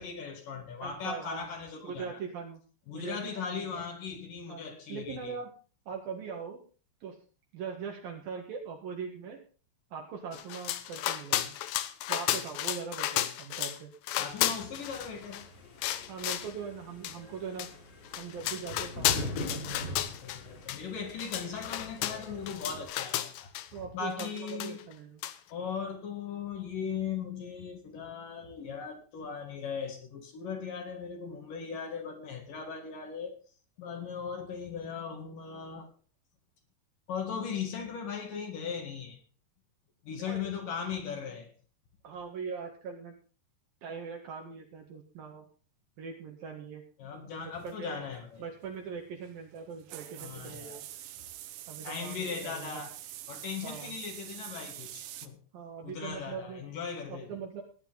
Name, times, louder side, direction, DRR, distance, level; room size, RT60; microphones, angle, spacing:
voice 1, 0.0-2.2 2.9-5.3 14.1-15.4 20.2-23.5 23.8-24.8 25.5-33.4 33.8-35.9 37.1-39.2 40.0-41.5 47.0-48.5 50.2-50.8 51.8-52.9 53.3-55.4 55.8-57.4, left 6 dB, 60° left, 3.3 m, -38 dB
voice 2, 0.8-1.5 1.8-2.6 2.9-3.8 4.5-4.6 4.9-5.5 5.9-6.6 7.0-7.2 7.5-9.4 9.9-11.6 12.1-13.9 16.1-17.7 18.2-19.8 23.7-25.2 40.2-40.7 42.0-43.2 43.8-45.5 46.0-46.8 47.3-48.0 48.4-50.9 51.7-52.9 53.6-54.0 55.5-56.6 57.1-57.6, right 6 dB, 60° right, 3.3 m, -41 dB
sound 1, 10.3-13.8 14.0-15.4 15.8-16.5 17.0-17.2 17.6-17.7 18.1-20.4 20.7-20.8 21.1-23.7 24.2-24.9 25.2-25.4, left 13 dB, 75° left, 2.4 m, -33 dB
sound 2, 14.7-22.8, left 1 dB, 40° left, 3.3 m, -43 dB
sound 3, 47.5-55.3, right 13 dB, 85° right, 1.8 m, -46 dB
18.0 x 9.8 x 4.0 m
omnidirectional pair, 4.9 m